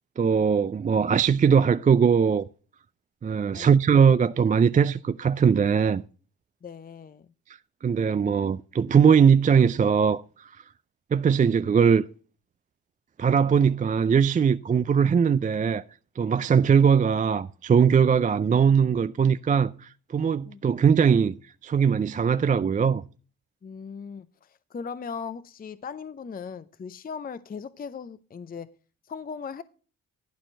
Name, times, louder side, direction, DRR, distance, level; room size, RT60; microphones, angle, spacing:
voice 1, 0.2-2.4 3.2-6.0 7.8-10.5 11.1-12.0 13.2-15.8 16.2-21.4 21.6-23.0, right 6 dB, 25° right, 0.4 m, -20 dB
voice 2, 6.6-7.3 20.5-20.6 23.6-28.7 29.1-29.6, left 6 dB, 25° left, 0.6 m, -38 dB
11.5 x 4.4 x 6.3 m
supercardioid pair, 65°, 36 cm